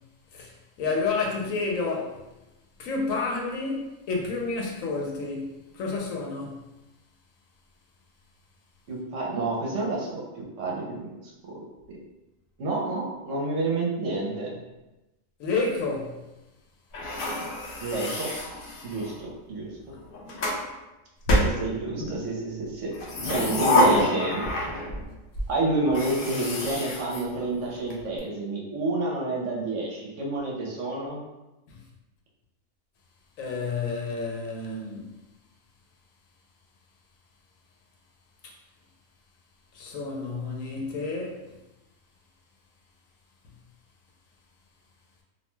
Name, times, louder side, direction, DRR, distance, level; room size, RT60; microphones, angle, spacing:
voice 1, 0.3-2.2 2.8-6.6 15.4-16.2 31.7-31.8 33.4-35.1 38.4-38.5 39.7-41.5, left 3 dB, 80° left, 1.0 m, -30 dB
voice 2, 8.9-11.6 11.9-12.0 12.6-14.5 17.8-18.4 18.8-19.7 21.4-22.9 23.2-24.4 25.5-31.2, right 2 dB, 70° right, 0.9 m, -29 dB
sound 1, 16.9-19.2 19.9-20.6 21.3-22.2 22.9-25.1 25.3-25.5 25.9-27.9, left 1 dB, 60° left, 0.6 m, -27 dB
2.5 x 2.1 x 3.0 m
omnidirectional pair, 1.4 m